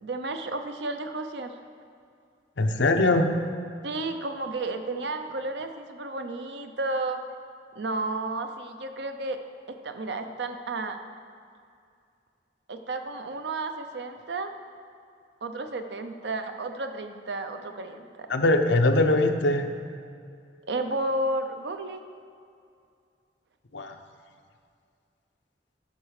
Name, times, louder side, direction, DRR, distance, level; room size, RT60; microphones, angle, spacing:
voice 1, 0.0-1.5 3.8-7.2 7.8-9.4 9.7-11.0 12.7-14.5 15.4-18.3 20.7-22.0, right 2 dB, 75° right, 7 dB, 0.7 m, -32 dB
voice 2, 2.6-3.3 18.3-19.7 23.7-23.9, left 2 dB, 90° left, 5 dB, 0.7 m, -21 dB
10.5 x 5.9 x 4.8 m, 2.3 s
head